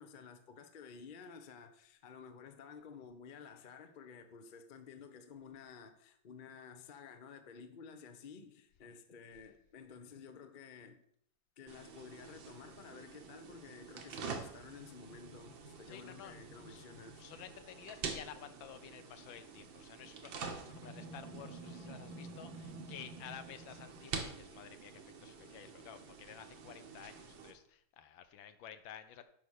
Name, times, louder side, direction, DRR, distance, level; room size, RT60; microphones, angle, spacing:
voice 1, 0.0-11.0 11.6-17.2, left 6 dB, 45° left, 0.7 m, -53 dB
sound 1, 11.7-27.5, right 5 dB, 90° right, 2.0 m, -47 dB
voice 2, 15.8-16.3 16.7-16.9 17.2-29.2, left 9 dB, 85° left, 1.6 m, -52 dB
9.1 x 5.6 x 6.5 m
omnidirectional pair, 2.1 m